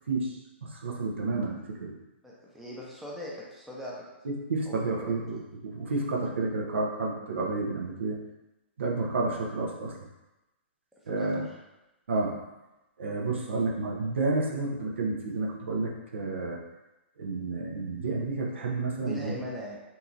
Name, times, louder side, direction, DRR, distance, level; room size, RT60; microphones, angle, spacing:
voice 1, 0.1-1.9 4.2-8.2 8.8-10.0 11.1-11.4 12.1-12.4 13.0-16.6 17.2-19.4, right 3 dB, 70° right, -1 dB, 0.6 m, -30 dB
voice 2, 2.2-3.9 4.7-5.1 11.0-11.3 19.0-19.8, equal, ahead, -5 dB, 0.5 m, -40 dB
2.8 x 2.6 x 2.4 m, 0.99 s
figure-of-eight pair, 120°, 7 cm